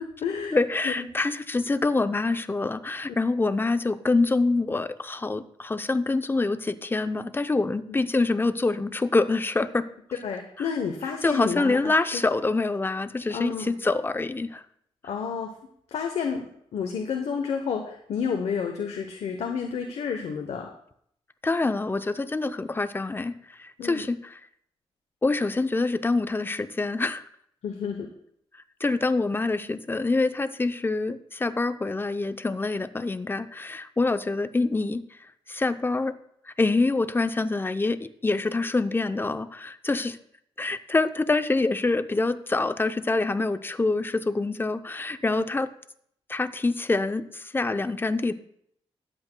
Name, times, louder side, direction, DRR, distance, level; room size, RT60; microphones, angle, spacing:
voice 1, 0.0-0.6 0.8-1.1 10.2-12.2 13.3-13.7 15.0-15.5 15.9-16.5 16.7-20.7 23.8-24.0 27.6-28.1 45.2-45.4, left 6 dB, 80° left, 3 dB, 0.9 m, -30 dB
voice 2, 0.5-9.9 10.6-10.7 11.2-14.6 21.4-24.4 25.2-27.2 28.8-35.0 35.5-36.2 36.6-40.2 40.6-45.7 46.3-48.3, left 3 dB, 20° left, 11 dB, 0.5 m, -26 dB
20.5 x 7.9 x 2.2 m, 0.69 s
cardioid pair, 95°, 11 cm